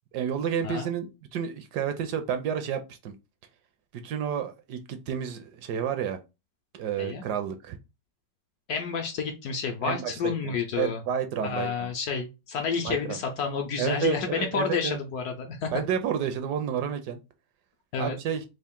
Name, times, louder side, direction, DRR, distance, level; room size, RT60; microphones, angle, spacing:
voice 1, 0.1-3.1 3.9-6.2 6.7-7.8 9.8-11.9 12.8-13.2 13.8-15.0 15.7-17.2 18.0-18.4, right 8 dB, 75° right, 1.1 m, -30 dB
voice 2, 8.7-11.0 11.4-15.7 17.9-18.2, left 5 dB, 70° left, 1.0 m, -30 dB
3.6 x 2.4 x 3.5 m
omnidirectional pair, 1.9 m